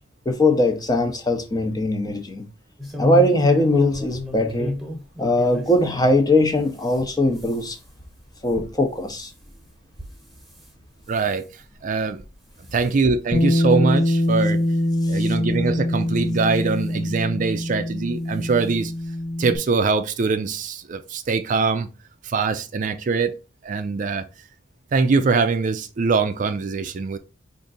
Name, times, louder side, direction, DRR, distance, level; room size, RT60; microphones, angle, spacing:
voice 1, 0.3-2.5 3.0-4.7 5.2-7.8 8.4-9.3, left 1 dB, 20° left, 0.7 m, -20 dB
sound 1, 2.8-6.1 6.6-10.7 11.1-11.5 12.0-12.3 12.6-12.9 13.5-13.6 14.0-14.1 15.2-15.3 16.1-16.9 18.0-18.2 18.6-18.7 19.0-19.1, left 2 dB, ahead, 1.1 m, -34 dB
voice 2, 11.1-12.2 12.7-14.6 15.1-18.9 19.4-21.9 22.2-23.4 23.6-24.3 24.9-27.2, right 4 dB, 45° right, 0.4 m, -23 dB
Bass guitar, 13.3-19.6, left 1 dB, 55° left, 0.9 m, -23 dB
5.0 x 2.6 x 3.9 m
head